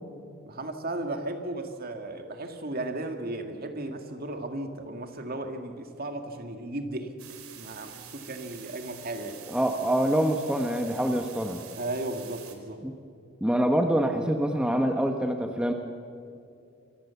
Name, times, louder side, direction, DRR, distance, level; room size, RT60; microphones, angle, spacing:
voice 1, 0.5-7.1 7.5-9.4 11.8-12.8, right 2 dB, 45° right, 5 dB, 2.1 m, -35 dB
sound 1, 7.2-12.5, right 9 dB, 80° right, 3.0 m, -47 dB
voice 2, 9.5-11.6 12.8-12.9 13.4-15.7, right 1 dB, 5° right, 4 dB, 1.1 m, -25 dB
26.5 x 23.0 x 7.1 m, 2.5 s
head